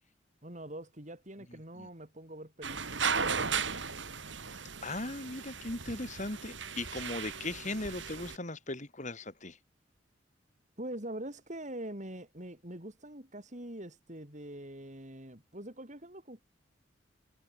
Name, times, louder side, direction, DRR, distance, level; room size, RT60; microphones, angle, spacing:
voice 1, 0.4-3.8 10.8-16.4, right 1 dB, 40° right, 6.3 m, -44 dB
voice 2, 1.5-1.9 4.8-9.6, left 2 dB, 40° left, 2.8 m, -38 dB
sound 1, 2.6-8.4, right 5 dB, 80° right, 5.0 m, -36 dB
head